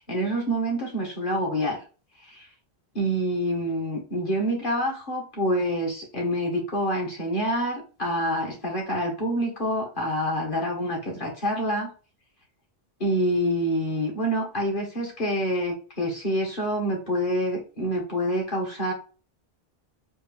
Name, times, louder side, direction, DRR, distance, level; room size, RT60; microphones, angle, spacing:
voice 1, 0.0-1.8 2.3-2.5 2.9-11.9 13.0-18.9, equal, 55° left, 0 dB, 1.6 m, -27 dB
4.4 x 2.7 x 3.3 m, 0.35 s
omnidirectional pair, 1.0 m